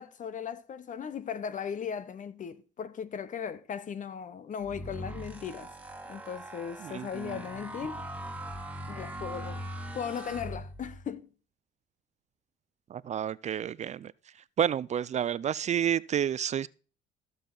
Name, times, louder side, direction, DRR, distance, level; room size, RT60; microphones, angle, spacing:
voice 1, 0.0-5.7 6.1-8.0 8.9-9.6 9.9-11.3, left 7 dB, 45° left, 1.0 m, -37 dB
sound 1, 4.6-11.1, right 1 dB, 10° right, 1.9 m, -41 dB
voice 2, 6.8-7.4 12.9-14.1 14.6-16.7, right 9 dB, 40° right, 0.4 m, -30 dB
14.5 x 6.7 x 3.9 m
supercardioid pair, 80°, 18 cm